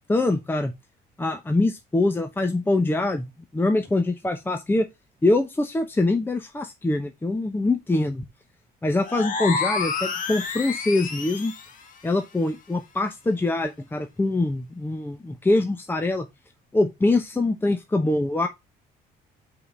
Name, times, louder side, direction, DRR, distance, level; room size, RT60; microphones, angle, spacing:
voice 1, 0.1-0.7 1.2-3.3 3.5-4.9 5.2-8.3 8.8-11.5 12.0-16.3 16.7-18.5, left 2 dB, 10° left, 0.9 m, -24 dB
sound 1, 9.0-11.7, left 5 dB, 50° left, 1.5 m, -29 dB
5.5 x 4.1 x 5.5 m
cardioid pair, 110°, 17 cm